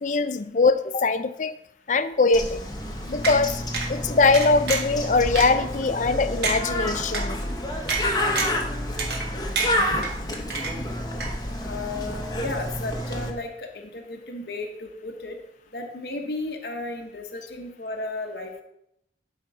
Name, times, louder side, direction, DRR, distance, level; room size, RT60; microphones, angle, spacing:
voice 1, 0.0-1.6 1.9-2.6 3.1-3.6 3.9-7.4, left 3 dB, 40° left, 12 dB, 0.5 m, -22 dB
Bird, 2.3-13.3, left 1 dB, 20° left, 1.0 m, -29 dB
sound 1, 3.2-3.4 3.7-3.9 4.3-4.9 5.3-5.5 6.0-6.1 6.4-6.6 7.1-7.2 7.9-8.0 8.3-8.6 9.0-9.3 9.5-10.1 10.5-10.9 11.2-11.3, right 4 dB, 60° right, 1.7 m, -27 dB
voice 2, 11.6-15.4 15.7-18.6, left 2 dB, 60° left, 3 dB, 1.1 m, -34 dB
11.5 x 4.0 x 4.9 m, 0.78 s
head